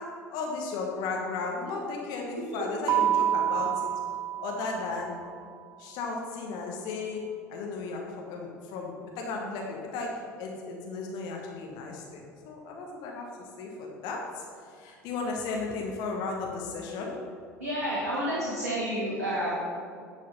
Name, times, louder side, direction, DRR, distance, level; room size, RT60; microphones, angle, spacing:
voice 1, 0.0-3.9 4.4-5.2 5.8-17.2, left 3 dB, 55° left, 0 dB, 1.2 m, -35 dB
Keyboard (musical), 2.9-5.4, right 10 dB, 40° right, 0.5 m, -28 dB
voice 2, 17.6-19.6, equal, 75° right, -6 dB, 1.7 m, -30 dB
10.5 x 4.9 x 5.6 m, 2.3 s
figure-of-eight pair, 65°, 9 cm